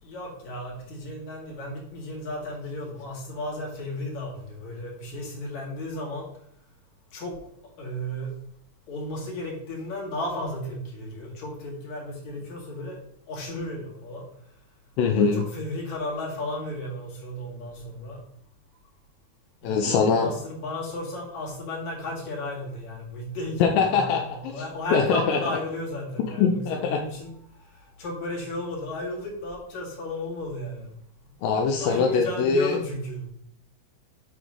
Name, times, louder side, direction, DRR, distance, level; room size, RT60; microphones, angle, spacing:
voice 1, 0.0-6.3 7.1-7.4 7.8-8.3 8.9-13.0 13.3-14.3 15.1-18.2 19.6-27.3 27.7-30.9 31.8-33.3, left 1 dB, 50° left, -3 dB, 3.3 m, -34 dB
voice 2, 15.0-15.4 19.6-20.3 23.6-24.5 24.9-25.4 26.4-27.0 31.4-32.8, left 5 dB, 80° left, 2 dB, 2.2 m, -22 dB
7.1 x 3.7 x 6.2 m, 0.68 s
omnidirectional pair, 4.4 m